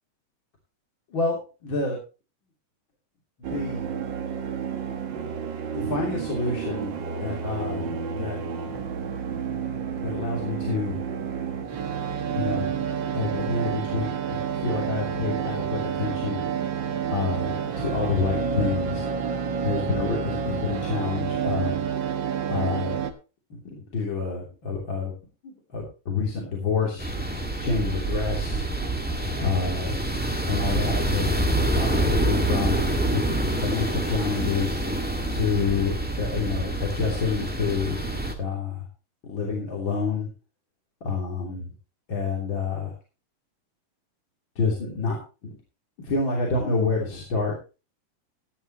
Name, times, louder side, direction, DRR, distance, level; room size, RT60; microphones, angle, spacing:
voice 1, 1.6-2.0 3.5-3.8 5.7-6.9 7.2-8.4 10.0-11.0 12.4-12.6 13.1-16.4 17.1-19.0 19.6-21.8 22.5-23.0 23.7-25.1 25.4-27.2 27.6-28.6 29.4-30.0 30.5-34.8 35.3-38.0 38.4-38.9 39.2-40.3 41.0-41.7 42.1-42.9 44.6-45.6 46.0-47.7, left 4 dB, 35° left, -2 dB, 3.5 m, -28 dB
sound 1, 3.4-23.1, right 7 dB, 65° right, 1.1 m, -29 dB
sound 2, 7.8-20.3, left 3 dB, 70° left, 5.3 m, -47 dB
sound 3, 27.0-38.3, right 1 dB, 10° right, 0.5 m, -26 dB
16.5 x 10.5 x 3.0 m, 0.32 s
omnidirectional pair, 4.0 m